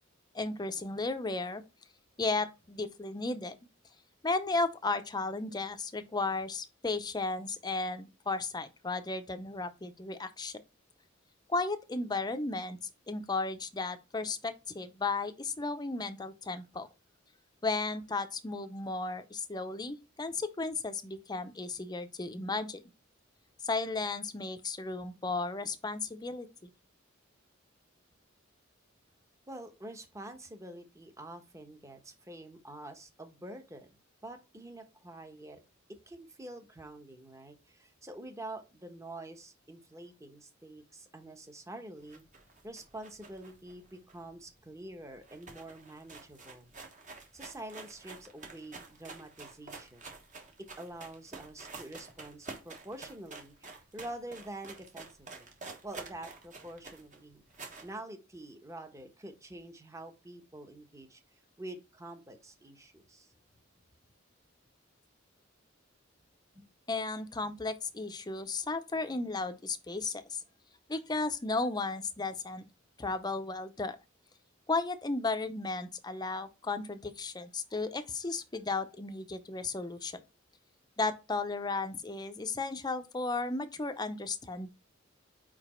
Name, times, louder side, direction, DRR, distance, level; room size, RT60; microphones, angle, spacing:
voice 1, 0.3-1.6 2.2-3.6 4.2-10.6 11.5-12.8 13.1-16.9 17.6-22.8 23.6-26.5 66.9-70.4 70.9-72.7 73.0-74.0 74.7-80.2 81.0-84.7, left 3 dB, 20° left, 0.6 m, -34 dB
voice 2, 29.5-33.9 34.2-35.6 36.1-42.3 42.6-46.7 47.3-50.2 50.8-55.5 55.8-57.4 57.8-61.2 61.6-63.3 66.5-66.6, right 1 dB, 15° right, 1.0 m, -47 dB
sound 1, 42.0-44.6 44.9-45.0 45.2-57.9, right 3 dB, 40° right, 1.3 m, -49 dB
5.0 x 4.7 x 4.3 m
head